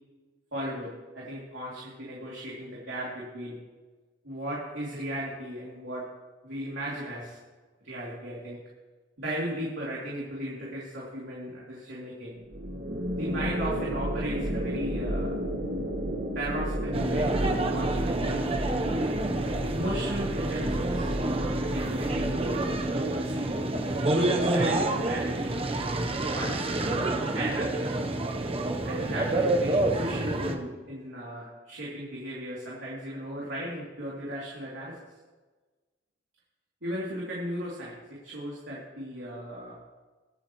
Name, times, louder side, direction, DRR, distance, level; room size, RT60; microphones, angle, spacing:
voice 1, 0.5-3.6 4.2-6.0 6.4-7.4 7.8-8.6 9.2-12.4 13.2-15.4 16.3-18.5 19.7-21.1 21.7-22.7 23.1-23.6 24.1-26.9 27.3-27.9 28.8-35.0 36.8-39.8, right 1 dB, 80° right, -6 dB, 3.0 m, -36 dB
sound 1, 12.5-22.9, right 1 dB, 55° right, 1.7 m, -32 dB
sound 2, 16.9-30.6, right 2 dB, 30° right, 1.0 m, -28 dB
24.0 x 8.8 x 3.2 m, 1.3 s
head